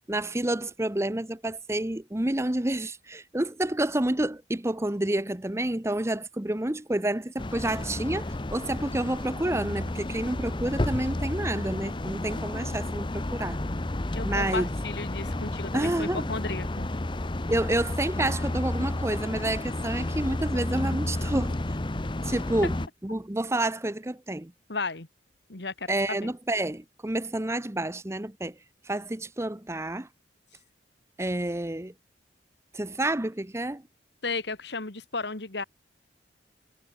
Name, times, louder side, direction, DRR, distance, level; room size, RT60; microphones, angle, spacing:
voice 1, 0.1-13.6 14.2-14.7 15.7-16.3 17.5-21.6 22.2-22.7 23.0-24.5 25.9-28.5 28.8-30.1 31.2-31.9 32.7-33.8, right 1 dB, 15° right, 0.8 m, -29 dB
sound 1, 7.4-22.9, left 1 dB, 25° left, 0.8 m, -31 dB
voice 2, 14.1-16.9 24.7-25.1 25.5-26.3 34.2-35.6, left 3 dB, 60° left, 2.0 m, -34 dB
head